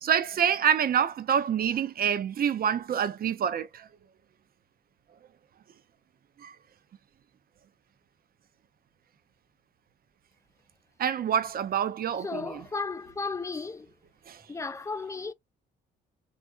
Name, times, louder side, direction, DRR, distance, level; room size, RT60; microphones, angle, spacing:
voice 1, 0.0-3.9 6.4-6.5 11.0-12.6 14.3-14.4, right 8 dB, 50° right, 0.6 m, -27 dB
voice 2, 12.2-13.9 14.5-15.3, left 4 dB, 15° left, 0.3 m, -34 dB
3.4 x 2.5 x 2.3 m
cardioid pair, 90°, 20 cm